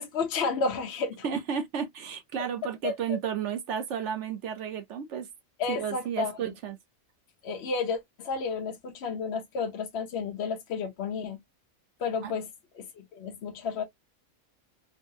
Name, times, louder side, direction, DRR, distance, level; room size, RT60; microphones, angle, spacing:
voice 1, 0.0-1.3 2.8-2.9 5.6-6.3 7.4-11.4 12.0-12.5 12.7-13.8, left 4 dB, 60° left, 0.8 m, -31 dB
voice 2, 1.2-5.3 5.7-6.8 12.2-12.3, right 8 dB, 65° right, 0.9 m, -32 dB
3.8 x 2.2 x 2.6 m
omnidirectional pair, 1.4 m